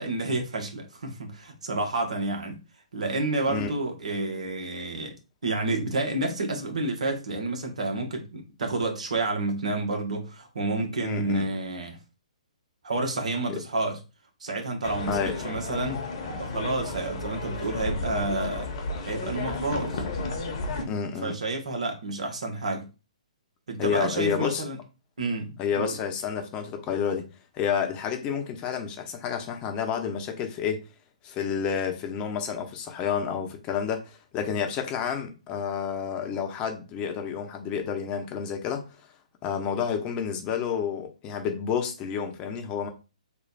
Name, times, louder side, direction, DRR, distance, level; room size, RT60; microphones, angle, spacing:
voice 1, 0.0-2.6 2.9-5.1 5.4-12.0 12.8-14.0 14.4-16.0 16.4-18.7 19.0-20.0 21.2-22.9 23.7-24.8 25.2-25.9, right 2 dB, 70° right, 1.2 m, -29 dB
voice 2, 11.0-11.5 13.5-13.6 15.1-15.3 20.9-21.3 23.8-24.6 25.6-27.3 27.5-30.8 31.2-38.8 39.4-42.9, left 7 dB, 25° left, 0.8 m, -30 dB
sound 1, 14.8-20.8, left 3 dB, 45° left, 1.0 m, -33 dB
3.3 x 2.3 x 4.0 m
hypercardioid pair, 135°, 4 cm